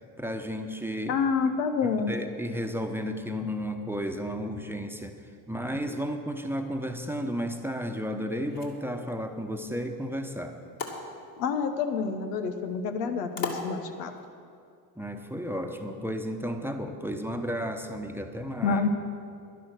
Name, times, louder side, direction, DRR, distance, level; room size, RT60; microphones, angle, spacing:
voice 1, 0.2-1.2 2.1-5.2 5.5-10.6 15.0-18.8, equal, 5° right, 4 dB, 1.1 m, -33 dB
voice 2, 1.1-2.1 11.4-14.1 18.6-18.9, left 5 dB, 85° left, 6 dB, 1.1 m, -28 dB
sound 1, 8.3-14.3, left 4 dB, 45° left, 2.4 m, -42 dB
11.5 x 10.5 x 6.4 m, 2.4 s
hypercardioid pair, 65°, 48 cm